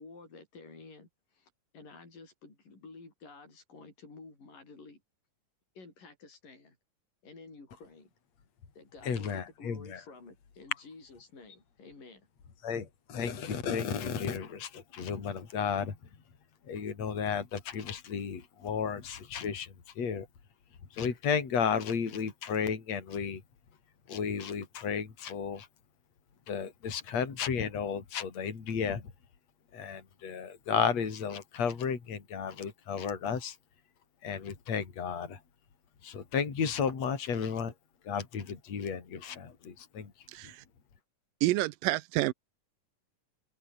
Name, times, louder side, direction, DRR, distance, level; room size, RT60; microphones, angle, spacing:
voice 1, 0.0-5.0 5.8-6.8 7.2-8.1 8.8-12.2, left 3 dB, 70° left, 9.6 m, -51 dB
voice 2, 9.0-10.0 12.6-16.0 16.7-20.3 20.9-23.4 24.1-25.7 26.5-29.0 29.7-33.6 34.2-35.4 36.0-37.7 38.0-40.1, left 6 dB, 50° left, 4.7 m, -33 dB
voice 3, 40.3-40.6 41.4-42.3, right 18 dB, 90° right, 2.4 m, -29 dB
omnidirectional pair, 4.0 m